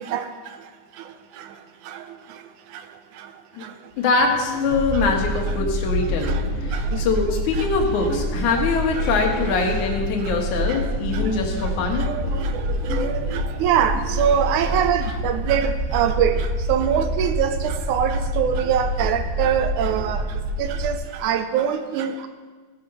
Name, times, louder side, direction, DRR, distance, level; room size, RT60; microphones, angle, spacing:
sound 1, 3.9-14.9, left 2 dB, 20° left, 2.8 m, -37 dB
voice 1, 4.0-12.1, left 4 dB, 65° left, 2 dB, 2.9 m, -23 dB
sound 2, 4.7-20.9, equal, 50° right, 2.3 m, -27 dB
voice 2, 12.9-16.4 16.7-20.2 20.6-21.0 21.2-22.3, right 9 dB, 75° right, 8 dB, 2.1 m, -23 dB
16.0 x 8.8 x 5.6 m, 1.4 s
omnidirectional pair, 3.8 m